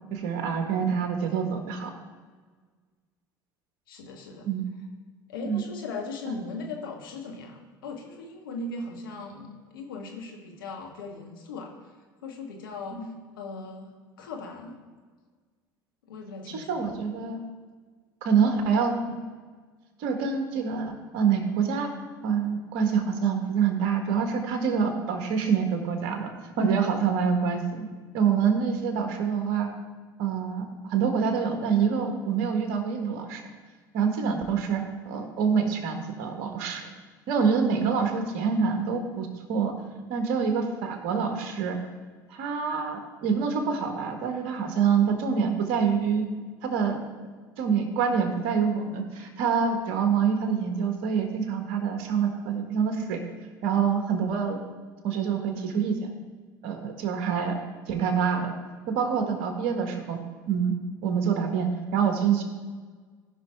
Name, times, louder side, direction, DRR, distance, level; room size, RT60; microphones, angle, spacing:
voice 1, 0.1-1.9 4.5-4.6 5.5-5.6 12.9-13.0 16.5-17.4 18.2-19.2 20.0-21.9 22.2-26.3 26.6-27.9 28.1-29.7 30.2-33.4 33.9-36.9 37.3-39.7 40.1-41.8 42.3-46.3 46.6-47.0 47.6-53.2 53.6-54.6 55.0-56.1 56.6-58.5 58.9-60.2 60.5-60.7 61.0-62.4, right 6 dB, 65° right, 4 dB, 1.5 m, -26 dB
voice 2, 3.9-4.5 5.3-11.9 12.2-14.8 16.0-16.8, left 3 dB, 85° left, 1 dB, 1.6 m, -38 dB
15.5 x 5.6 x 3.6 m, 1.5 s
hypercardioid pair, 70°, 11 cm